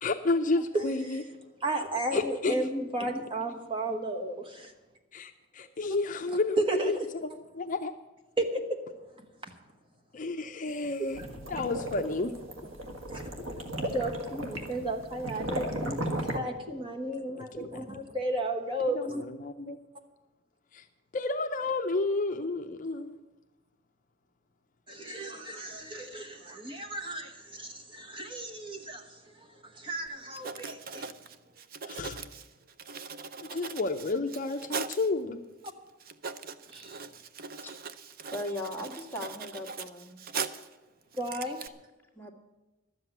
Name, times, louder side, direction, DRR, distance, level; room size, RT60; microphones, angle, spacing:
voice 1, 0.0-1.2 2.1-2.6 5.1-7.0 7.5-7.9 10.1-11.2 11.5-12.3 17.5-17.8 18.9-19.8 20.7-20.8 21.1-23.2 31.9-32.2 33.4-35.4, left 3 dB, 40° left, 5 dB, 0.6 m, -31 dB
voice 2, 0.7-1.2 1.6-4.7 6.7-7.0 8.4-8.8 9.4-9.5 13.1-13.3 13.9-19.2 24.9-31.1 36.7-37.0 41.2-41.6, right 1 dB, 25° right, 4 dB, 1.2 m, -34 dB
sound 1, 10.8-16.4, right 1 dB, 80° right, 1.7 m, -35 dB
Writing, 30.1-30.2 30.3-35.1 35.6-35.7 36.0-40.7 41.1-41.7, right 5 dB, 45° right, 0.6 m, -40 dB
voice 3, 38.3-40.2 41.6-41.7 42.1-42.3, left 1 dB, 10° left, -1 dB, 1.7 m, -38 dB
12.5 x 7.9 x 9.1 m, 1.1 s
head